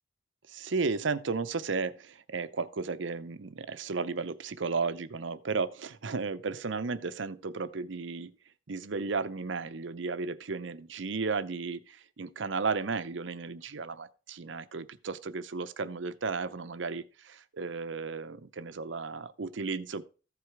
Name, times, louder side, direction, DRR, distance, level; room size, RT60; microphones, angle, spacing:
voice 1, 0.5-8.3 8.7-20.0, right 4 dB, 75° right, 0.7 m, -34 dB
14.5 x 4.8 x 4.7 m
head